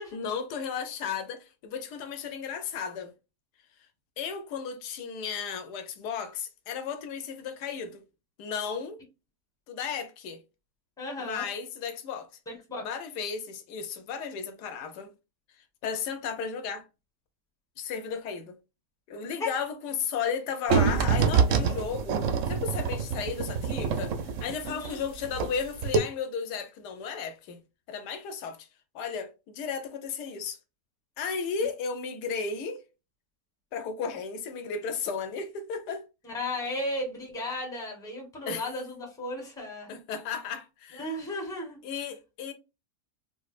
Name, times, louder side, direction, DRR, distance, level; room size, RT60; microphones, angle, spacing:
voice 1, 0.1-3.1 4.2-8.0 8.4-9.0 9.7-10.4 11.2-12.3 12.8-15.1 15.8-16.8 17.8-18.6 19.1-24.1 24.4-27.6 27.9-28.7 28.9-30.6 31.2-32.8 33.7-36.0 38.5-38.6 39.9-41.1 41.8-42.5, left 6 dB, 85° left, 1.2 m, -34 dB
voice 2, 11.0-11.5 12.5-12.9 19.4-19.5 24.6-25.0 36.2-39.9 40.9-41.8, left 1 dB, 5° left, 0.9 m, -35 dB
sound 1, 20.7-25.6 25.8-26.0, right 6 dB, 65° right, 0.8 m, -26 dB
5.0 x 2.1 x 2.4 m
omnidirectional pair, 1.7 m